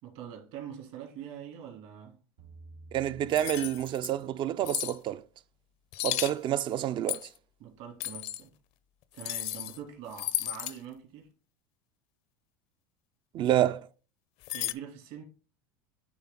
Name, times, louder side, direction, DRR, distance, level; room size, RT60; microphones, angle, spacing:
voice 1, 0.0-2.2 7.6-8.5 9.1-11.3 14.5-15.2, right 9 dB, 65° right, 2.7 m, -44 dB
sound 1, 2.4-4.8, right 2 dB, 85° right, 2.4 m, -53 dB
voice 2, 2.9-5.2 6.0-7.2 13.3-13.9, right 12 dB, 40° right, 0.4 m, -28 dB
sound 2, 3.3-4.1 4.6-5.0 5.9-6.3 7.1-7.4 8.0-8.4 9.2-9.8 10.1-10.8 14.4-14.7, left 15 dB, 60° left, 0.6 m, -34 dB
9.6 x 3.4 x 3.7 m
supercardioid pair, 100°, 12 cm